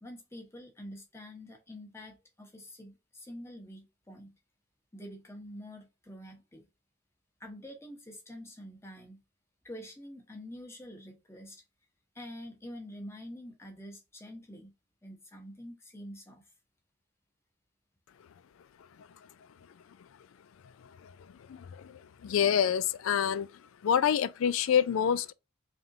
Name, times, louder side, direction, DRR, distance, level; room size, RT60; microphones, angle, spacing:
voice 1, 0.0-4.3 4.9-6.6 7.4-9.2 9.6-11.6 12.1-14.7 15.0-16.4, equal, 15° left, 1.0 m, -46 dB
voice 2, 21.5-23.5 23.8-25.3, left 8 dB, 70° left, 0.3 m, -27 dB
3.7 x 3.4 x 2.7 m
head